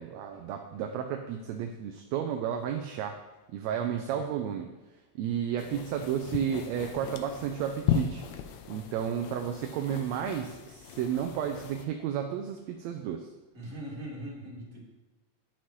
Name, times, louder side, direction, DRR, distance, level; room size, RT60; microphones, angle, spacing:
voice 1, 0.0-3.2 3.5-4.7 5.2-8.2 8.7-13.3, right 9 dB, 80° right, 4 dB, 1.7 m, -32 dB
voice 2, 3.7-4.3 13.5-14.8, right 1 dB, 30° right, -6 dB, 2.7 m, -41 dB
sound 1, 5.6-11.9, left 9 dB, 80° left, 1.8 m, -36 dB
11.5 x 5.8 x 3.1 m, 1.2 s
omnidirectional pair, 3.3 m